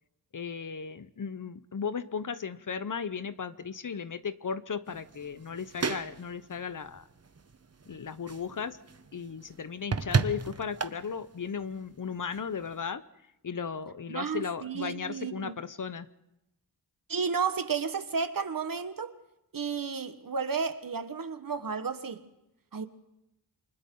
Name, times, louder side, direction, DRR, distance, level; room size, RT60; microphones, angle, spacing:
voice 1, 0.3-7.1 7.9-8.8 9.1-13.0 13.4-16.1, left 6 dB, 50° left, 0.9 m, -36 dB
sound 1, 4.9-12.9, right 5 dB, 40° right, 1.1 m, -36 dB
voice 2, 14.1-15.5 17.1-19.1 19.5-22.2 22.7-22.9, right 5 dB, 55° right, 1.4 m, -32 dB
28.5 x 24.5 x 3.9 m
wide cardioid pair, 75°, 40 cm